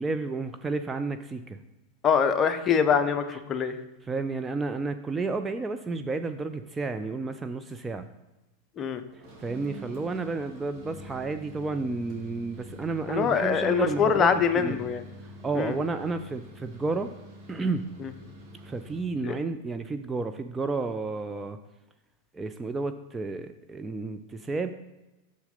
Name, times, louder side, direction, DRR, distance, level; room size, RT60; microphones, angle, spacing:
voice 1, 0.0-1.6 4.1-8.1 9.4-14.3 14.6-14.8 15.4-17.1 17.5-17.8 18.6-21.6 22.3-24.7, right 3 dB, 15° right, 7 dB, 0.4 m, -31 dB
voice 2, 2.0-3.8 8.8-9.0 13.1-15.0 15.5-15.7 19.2-19.4, left 7 dB, 25° left, 9 dB, 0.7 m, -24 dB
sound 1, 9.1-19.1, right 1 dB, 35° right, 2.2 m, -46 dB
6.9 x 6.4 x 3.9 m, 1.0 s
figure-of-eight pair, 90°, 0 cm